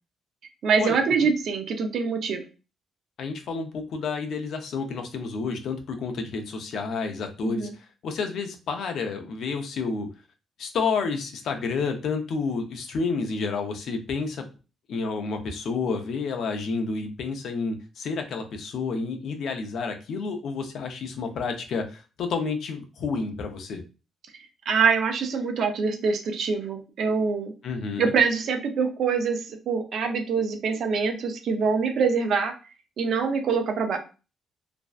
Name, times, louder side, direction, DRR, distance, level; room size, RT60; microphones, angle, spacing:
voice 1, 0.6-2.4 7.4-7.7 24.7-27.5 28.0-32.5 33.0-34.0, right 5 dB, 65° right, 6 dB, 0.5 m, -24 dB
voice 2, 3.2-10.1 10.6-14.5 14.9-23.8 27.6-28.1, left 4 dB, 70° left, 5 dB, 0.5 m, -30 dB
2.5 x 2.1 x 2.3 m, 0.32 s
cardioid pair, 90°, 0 cm